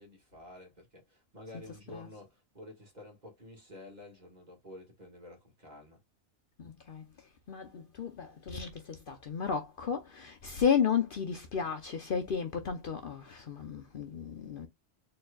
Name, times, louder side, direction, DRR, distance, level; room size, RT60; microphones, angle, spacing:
voice 1, 0.0-6.0, left 1 dB, 40° right, 1.9 m, -50 dB
voice 2, 6.6-14.7, left 7 dB, 55° left, 0.8 m, -33 dB
4.4 x 3.2 x 2.3 m
omnidirectional pair, 1.2 m